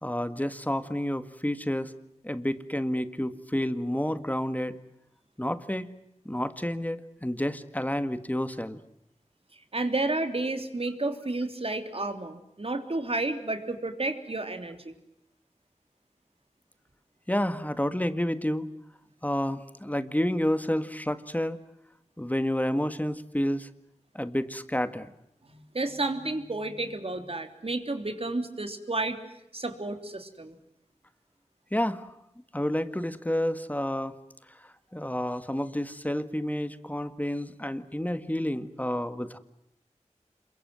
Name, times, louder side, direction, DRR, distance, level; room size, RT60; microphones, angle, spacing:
voice 1, 0.0-1.9 2.2-4.8 5.4-5.9 6.3-8.8 17.3-18.7 19.2-21.6 22.2-23.7 24.1-25.1 31.7-32.1 32.5-34.2 34.5-39.4, left 1 dB, 10° left, 11 dB, 1.8 m, -30 dB
voice 2, 9.7-14.9 25.4-29.2 29.5-30.6, right 2 dB, 50° right, 7 dB, 3.3 m, -31 dB
27.5 x 23.0 x 7.6 m, 0.83 s
wide cardioid pair, 45°, 12 cm